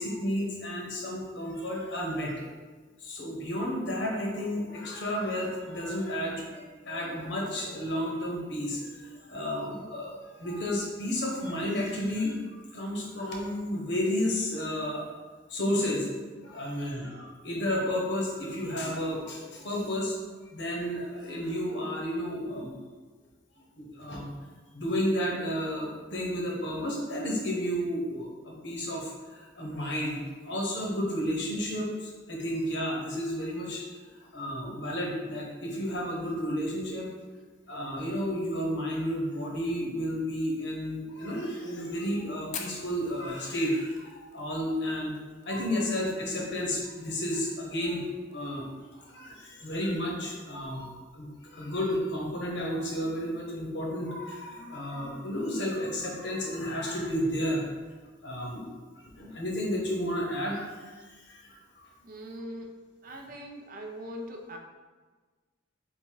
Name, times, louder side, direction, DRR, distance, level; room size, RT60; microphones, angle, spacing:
voice 1, 0.0-2.4 3.0-12.4 12.7-15.0 15.5-16.1 16.4-20.2 20.5-22.7 23.8-24.3 24.7-30.2 30.4-33.8 34.3-37.4 37.7-45.1 45.4-48.1 48.3-57.7 58.2-58.7 59.0-60.9 61.3-61.9, equal, 60° left, -2 dB, 0.9 m, -32 dB
Fire, 42.5-47.0 47.3-47.4 47.6-47.7 48.1-48.5 49.0-49.1 50.2-50.3, left 6 dB, 35° left, 0.4 m, -44 dB
voice 2, 62.0-62.8 63.0-64.6, equal, 45° right, 2 dB, 0.4 m, -41 dB
3.7 x 2.6 x 4.5 m, 1.4 s
head